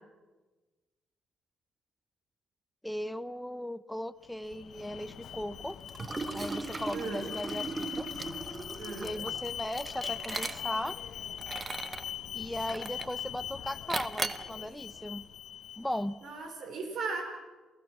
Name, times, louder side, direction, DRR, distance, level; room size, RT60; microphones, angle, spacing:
voice 1, 2.8-5.8 6.3-8.1 9.0-11.0 12.3-15.3 15.8-16.2, left 1 dB, 5° left, 12 dB, 0.6 m, -37 dB
Alarm, 4.3-16.3, left 10 dB, 65° left, 0.8 m, -41 dB
Liquid, 5.9-10.9 11.4-12.1 12.7-13.2 13.9-14.5, right 3 dB, 25° right, 0.9 m, -37 dB
voice 2, 6.9-7.3 8.8-9.2 16.2-17.2, right 4 dB, 65° right, 4 dB, 4.9 m, -37 dB
28.5 x 16.0 x 6.0 m, 1.2 s
cardioid pair, 90°, 0 cm